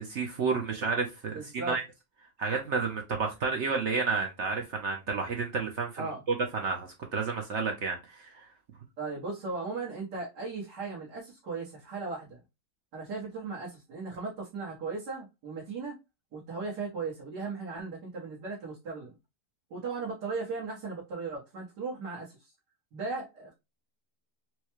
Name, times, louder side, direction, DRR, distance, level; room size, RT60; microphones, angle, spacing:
voice 1, 0.0-1.8 2.4-8.5, right 4 dB, 60° right, 0.8 m, -31 dB
voice 2, 1.3-1.8 6.0-6.2 9.0-12.4 12.9-16.0 16.3-19.1 19.7-22.5 22.9-23.5, right 4 dB, 85° right, 1.8 m, -37 dB
4.6 x 2.2 x 2.9 m
omnidirectional pair, 1.7 m